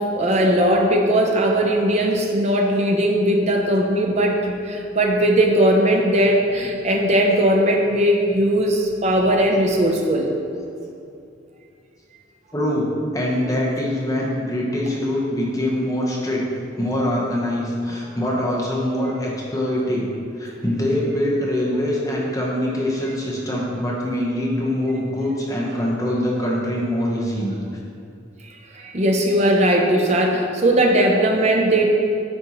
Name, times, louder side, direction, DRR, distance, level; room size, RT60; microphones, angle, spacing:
voice 1, 0.0-10.3 28.7-31.9, right 1 dB, 35° right, 1 dB, 0.6 m, -18 dB
voice 2, 12.5-12.9 13.1-16.4 16.8-20.1 20.4-27.6, left 1 dB, 15° left, -4 dB, 1.0 m, -23 dB
9.7 x 4.3 x 3.0 m, 2.5 s
head